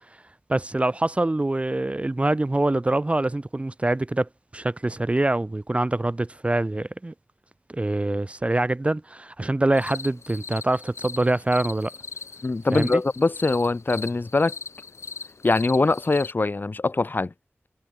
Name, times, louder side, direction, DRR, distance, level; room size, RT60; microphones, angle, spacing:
voice 1, 0.5-7.1 7.7-11.9 12.7-13.0, right 2 dB, 25° right, 0.6 m, -24 dB
sound 1, 9.7-16.3, left 4 dB, 80° left, 0.6 m, -40 dB
voice 2, 12.4-14.5 15.4-17.3, left 3 dB, 45° left, 0.8 m, -22 dB
wide cardioid pair, 65°, 5 cm